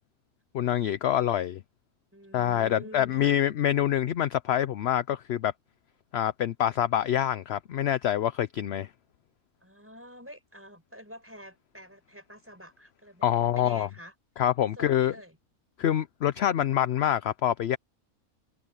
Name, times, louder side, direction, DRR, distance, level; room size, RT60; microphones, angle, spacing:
voice 1, 0.5-1.6 2.3-5.5 6.1-8.9 13.2-13.9 14.4-15.1 15.8-17.8, left 11 dB, 60° left, 0.7 m, -26 dB
voice 2, 2.1-3.4 9.6-14.1 14.8-15.4, equal, 10° right, 5.8 m, -48 dB
omnidirectional pair, 1.5 m